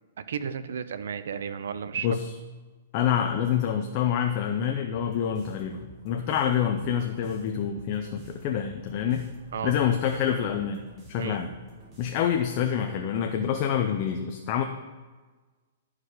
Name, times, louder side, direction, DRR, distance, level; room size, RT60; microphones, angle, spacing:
voice 1, 0.3-2.1 9.5-9.7 11.2-11.4, right 7 dB, 75° right, 12 dB, 0.6 m, -33 dB
voice 2, 2.9-9.3 9.6-10.8 11.1-11.5 12.0-14.6, left 8 dB, 35° left, 5 dB, 0.5 m, -27 dB
sound 1, 4.9-12.6, right 1 dB, 25° right, 1.5 m, -50 dB
11.5 x 4.9 x 4.8 m, 1.3 s
hypercardioid pair, 160°, 0 cm